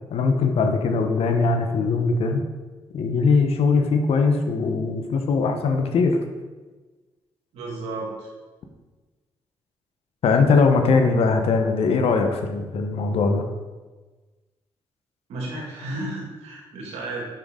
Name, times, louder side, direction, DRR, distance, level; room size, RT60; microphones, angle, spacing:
voice 1, 0.1-2.4 2.9-6.2 10.2-13.4, left 4 dB, 70° left, 5 dB, 0.9 m, -20 dB
voice 2, 7.5-8.3 15.3-17.2, right 2 dB, 85° right, -2 dB, 1.9 m, -33 dB
6.5 x 6.0 x 3.8 m, 1.3 s
supercardioid pair, 60°, 10 cm